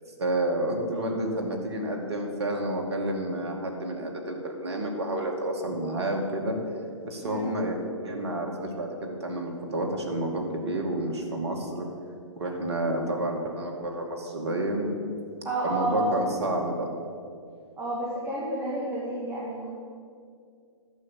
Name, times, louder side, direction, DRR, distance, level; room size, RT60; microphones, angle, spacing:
voice 1, 0.2-6.6 7.0-11.9 12.4-14.9 15.6-16.9, right 1 dB, 60° right, 2 dB, 2.2 m, -30 dB
voice 2, 15.4-16.2 17.8-19.7, right 1 dB, 15° right, -5 dB, 2.2 m, -30 dB
11.5 x 7.3 x 7.4 m, 2.3 s
figure-of-eight pair, 120°, 16 cm